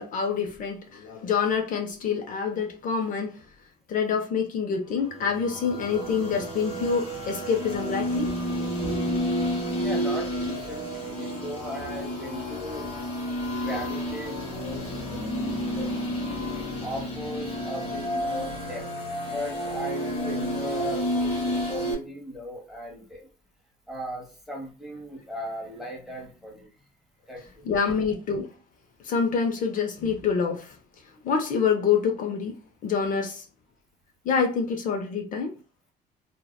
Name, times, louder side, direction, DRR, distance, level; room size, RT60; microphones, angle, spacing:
voice 1, 0.0-3.4 3.9-8.3 8.8-9.2 27.6-28.5 29.0-30.8 31.2-32.5 32.8-33.5 34.2-35.5, left 6 dB, 50° left, 3 dB, 0.5 m, -26 dB
sound 1, 5.0-21.9, equal, 35° left, 1.1 m, -30 dB
voice 2, 9.8-12.9 13.5-15.9 16.8-18.9 19.3-21.3 21.7-23.3 23.9-26.7 27.3-27.7, equal, ahead, -2 dB, 0.9 m, -37 dB
2.7 x 2.1 x 2.2 m, 0.36 s
cardioid pair, 110°, 17 cm